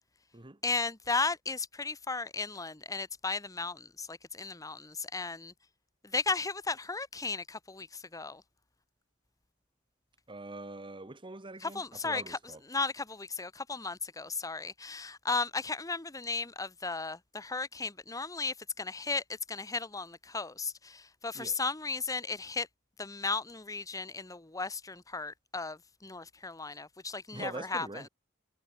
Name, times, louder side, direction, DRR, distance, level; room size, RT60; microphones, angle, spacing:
voice 1, 0.6-5.5 6.1-8.4 11.6-12.4 12.7-22.7 23.0-27.9, left 4 dB, 15° left, 1.1 m, -35 dB
voice 2, 10.3-12.6 21.3-21.6 27.3-28.1, right 2 dB, 25° right, 1.5 m, -43 dB
head